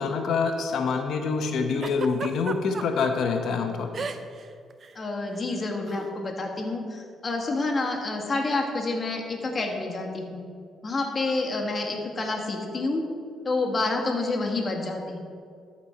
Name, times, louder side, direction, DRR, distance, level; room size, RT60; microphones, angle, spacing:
voice 1, 0.0-4.1, left 5 dB, 70° left, 5 dB, 1.0 m, -26 dB
Giggle, 1.8-3.1 3.9-4.5 4.7-4.9 5.9-6.1, right 5 dB, 45° right, 0.5 m, -34 dB
voice 2, 4.9-10.4 10.8-13.0 13.4-15.2, left 3 dB, 35° left, 1 dB, 1.4 m, -28 dB
13.0 x 4.4 x 4.4 m, 2.3 s
cardioid pair, 90°, 0 cm